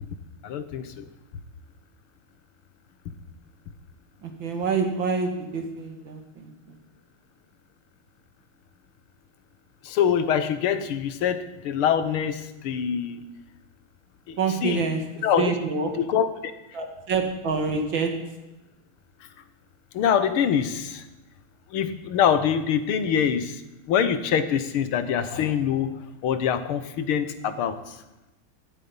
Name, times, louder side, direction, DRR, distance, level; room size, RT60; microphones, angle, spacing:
voice 1, 0.4-1.1 9.8-13.2 14.3-14.8 15.2-15.5 16.0-16.5 19.9-21.0 21.7-23.6 23.9-28.0, left 8 dB, 85° left, 11 dB, 2.0 m, -24 dB
voice 2, 4.2-6.5 14.4-15.0 15.4-15.9 16.7-18.1, right 4 dB, 65° right, 4 dB, 2.8 m, -27 dB
17.0 x 13.0 x 5.5 m, 1.0 s
omnidirectional pair, 2.3 m